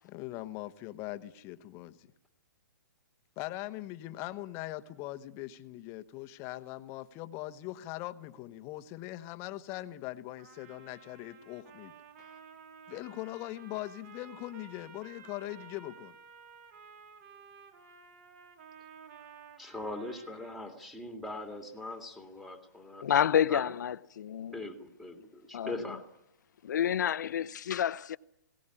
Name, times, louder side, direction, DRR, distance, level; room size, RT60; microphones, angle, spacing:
voice 1, 0.0-2.1 3.4-11.9 12.9-16.2, left 16 dB, 25° left, 1.0 m, -41 dB
Trumpet, 10.4-20.8, right 6 dB, 45° right, 3.2 m, -54 dB
voice 2, 19.6-23.0 23.5-23.7 24.5-26.0, left 2 dB, ahead, 2.1 m, -41 dB
voice 3, 23.0-24.7 25.5-25.8 26.6-28.2, left 9 dB, 70° left, 0.8 m, -29 dB
20.5 x 17.5 x 9.9 m
hypercardioid pair, 160°, 10 cm